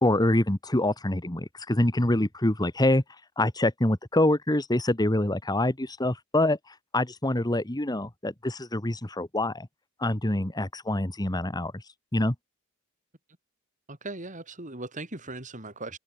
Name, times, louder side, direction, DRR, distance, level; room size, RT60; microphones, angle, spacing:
voice 1, 0.0-3.0 3.4-9.7 10.0-11.8 12.1-12.3, left 1 dB, 20° left, 1.6 m, -25 dB
voice 2, 13.9-16.0, right 2 dB, 40° right, 4.7 m, -38 dB
open air
head